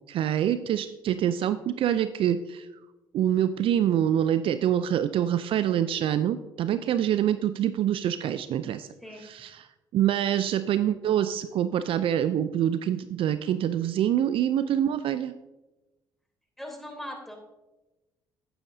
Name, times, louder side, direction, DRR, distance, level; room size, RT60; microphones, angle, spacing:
voice 1, 0.1-2.7 3.1-8.9 9.2-9.7 9.9-15.3, right 10 dB, 60° right, 12 dB, 0.4 m, -25 dB
voice 2, 16.6-17.4, left 1 dB, ahead, 1 dB, 3.2 m, -39 dB
11.0 x 9.1 x 2.7 m, 1.1 s
hypercardioid pair, 55°, 10 cm